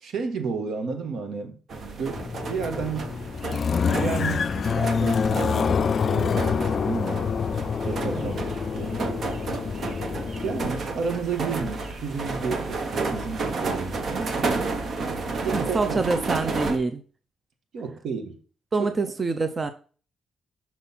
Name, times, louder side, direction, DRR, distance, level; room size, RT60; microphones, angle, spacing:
voice 1, 0.0-3.2 3.9-7.4 7.9-8.3 8.7-9.0 10.4-14.7 15.3-16.0 17.7-18.4 18.8-18.9, right 5 dB, 80° right, 1.4 m, -32 dB
sound 1, 1.7-16.8, right 3 dB, 60° right, 1.1 m, -31 dB
sound 2, 2.2-10.7, left 6 dB, 50° left, 0.3 m, -26 dB
voice 2, 15.5-17.0 18.7-19.7, right 3 dB, 35° right, 0.7 m, -26 dB
6.1 x 4.2 x 5.6 m
cardioid pair, 90°, 0 cm